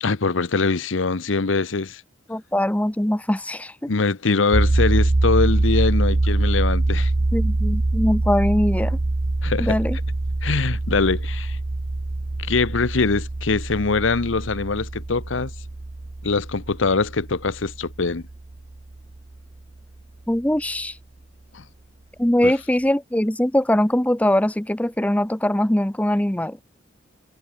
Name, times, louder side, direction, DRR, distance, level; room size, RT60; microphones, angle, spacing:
voice 1, 0.0-2.0 3.9-7.1 9.4-9.8 10.4-11.6 12.4-15.5 16.2-18.2 21.5-21.6 22.4-22.5, left 4 dB, 85° left, 0.9 m, -23 dB
voice 2, 2.3-3.7 7.3-9.0 9.6-10.0 20.3-21.0 22.2-26.6, left 1 dB, 5° left, 0.6 m, -21 dB
sound 1, 4.5-19.3, right 2 dB, 40° right, 0.7 m, -24 dB
head